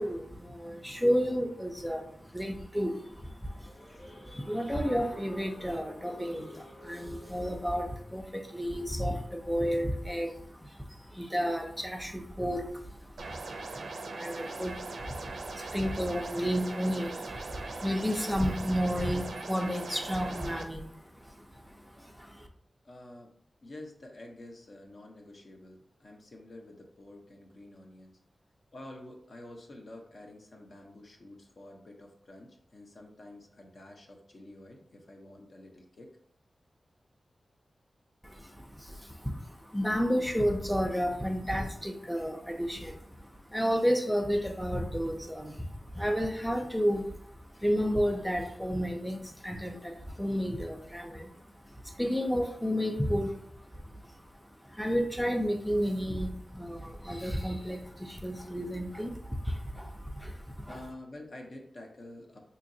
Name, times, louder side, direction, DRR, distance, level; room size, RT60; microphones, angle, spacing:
voice 1, 0.0-22.5 38.2-60.8, equal, ahead, 3 dB, 0.4 m, -32 dB
sound 1, 2.9-8.2, left 1 dB, 75° left, 1.5 m, -51 dB
sound 2, 13.2-20.6, right 3 dB, 80° right, 0.4 m, -40 dB
voice 2, 22.8-23.3 23.6-28.2 28.7-36.1 60.7-62.4, left 1 dB, 55° left, 2 dB, 0.7 m, -49 dB
3.9 x 2.8 x 2.6 m, 0.65 s
wide cardioid pair, 90°, 0 cm